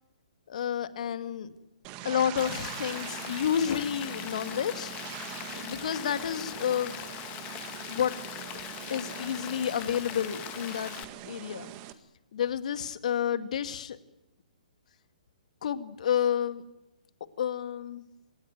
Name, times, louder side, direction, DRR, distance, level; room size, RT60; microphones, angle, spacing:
voice 1, 0.5-1.5 2.0-4.9 5.5-7.0 7.9-8.1 8.6-10.9 11.2-11.7 12.3-14.0 15.6-16.6 17.4-18.0, left 9 dB, 60° left, 10 dB, 2.1 m, -30 dB
sound 1, 1.8-11.9, right 12 dB, 30° right, 1.8 m, -42 dB
Rain, 2.4-11.0, left 16 dB, 30° left, 1.3 m, -41 dB
25.5 x 18.5 x 9.5 m, 0.98 s
hypercardioid pair, 140°, 4 cm